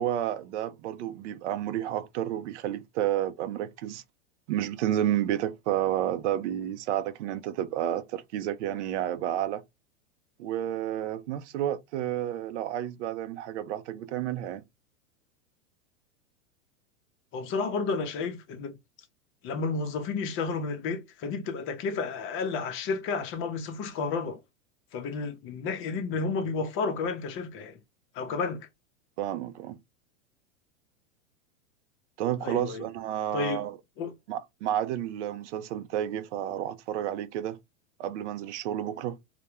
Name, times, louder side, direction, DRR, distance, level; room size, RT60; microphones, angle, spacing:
voice 1, 0.0-4.0 4.5-9.6 10.4-14.6 29.2-29.8 32.2-33.8 34.3-37.6 38.0-39.2, right 11 dB, 65° right, 0.5 m, -31 dB
voice 2, 17.3-18.7 19.4-24.4 24.9-27.7 28.1-28.7 32.4-32.8 33.3-33.6 34.0-34.1, left 4 dB, 35° left, 0.6 m, -31 dB
2.2 x 2.1 x 2.9 m
hypercardioid pair, 110°, 38 cm